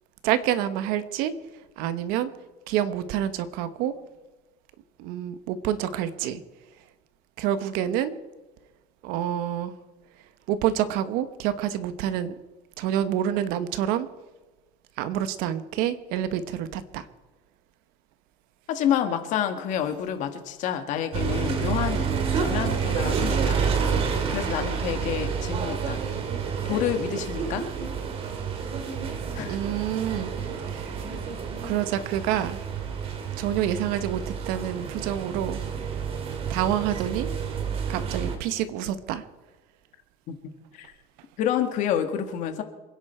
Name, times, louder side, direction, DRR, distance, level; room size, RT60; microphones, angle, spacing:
voice 1, 0.2-1.3 1.8-2.3 2.7-3.9 5.0-6.4 7.4-8.1 9.0-9.7 10.5-12.4 12.8-14.1 15.0-17.1 29.5-30.3 30.7-31.2 31.6-32.6 33.0-33.1 33.4-35.6 35.9-36.0 36.5-37.3 37.9-39.2, right 11 dB, 65° right, 12 dB, 1.3 m, -27 dB
voice 2, 18.7-22.1 22.4-23.6 24.3-26.0 26.6-27.7 29.3-29.6 40.3-40.9 41.4-42.6, left 9 dB, 50° left, 7 dB, 1.9 m, -28 dB
sound 1, 21.1-38.4, right 6 dB, 35° right, 2.3 m, -29 dB
27.0 x 10.5 x 4.5 m, 1.2 s
cardioid pair, 150°, 16 cm